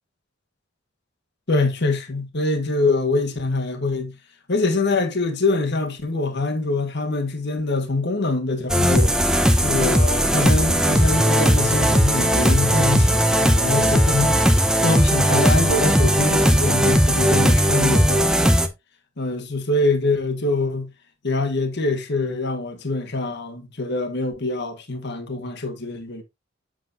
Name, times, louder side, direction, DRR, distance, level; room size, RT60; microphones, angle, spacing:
voice 1, 1.5-4.1 4.5-9.1 9.6-18.5 19.2-20.9 21.2-26.2, left 2 dB, 60° left, 1.5 m, -24 dB
sound 1, 8.7-18.7, equal, 5° right, 0.8 m, -18 dB
7.7 x 7.4 x 2.6 m
head